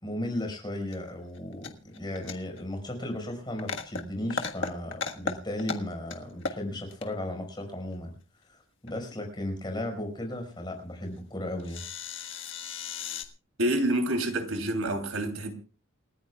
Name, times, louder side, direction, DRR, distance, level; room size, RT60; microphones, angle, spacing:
voice 1, 0.0-8.2 8.5-11.8, left 1 dB, 20° left, 5.0 m, -35 dB
sound 1, 0.9-1.0 1.2-2.6 2.9-3.0 3.4-4.0 4.3-5.3 5.6-6.2 6.4-7.1 8.9-9.1 10.3-10.4 10.6-10.7 11.2-11.3 11.6-13.2, left 4 dB, 60° left, 1.6 m, -35 dB
voice 2, 13.6-15.5, right 1 dB, 90° right, 3.2 m, -27 dB
28.5 x 14.5 x 2.4 m
head